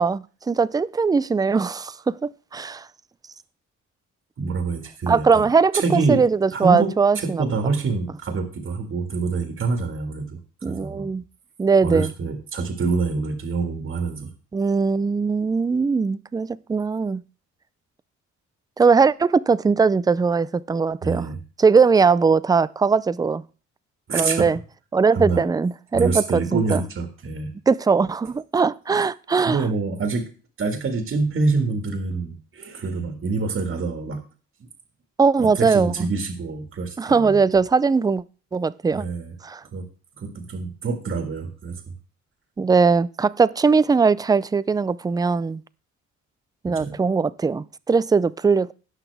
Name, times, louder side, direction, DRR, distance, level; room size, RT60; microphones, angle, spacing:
voice 1, 0.0-2.9 5.1-7.4 10.6-11.2 11.6-12.1 14.5-17.2 18.8-21.3 21.6-23.4 24.1-24.6 24.9-26.8 27.7-29.6 35.2-36.1 37.0-38.2 38.5-39.0 39.4-39.6 42.6-45.6 46.6-48.7, right 5 dB, 15° right, 0.4 m, -20 dB
voice 2, 4.4-5.4 5.7-6.2 6.5-6.9 7.2-11.1 11.8-14.3 21.0-21.4 24.1-24.5 25.1-25.4 25.9-27.5 29.4-30.3 30.6-34.2 35.4-37.4 38.9-39.3 39.7-39.9 40.2-41.9 46.6-47.0, right 4 dB, 45° right, 1.8 m, -26 dB
17.0 x 5.8 x 3.4 m
cardioid pair, 90°, 30 cm